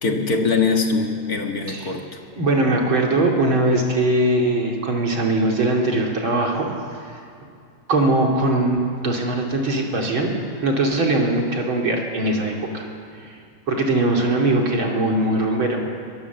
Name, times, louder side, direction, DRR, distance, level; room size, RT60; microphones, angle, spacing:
voice 1, 0.0-2.2, left 4 dB, 40° left, 3 dB, 1.4 m, -22 dB
voice 2, 2.4-6.7 7.0-7.1 7.9-12.8 13.2-13.4 13.7-15.8, right 2 dB, 40° right, 0 dB, 3.2 m, -21 dB
23.5 x 23.0 x 7.2 m, 2.4 s
omnidirectional pair, 3.9 m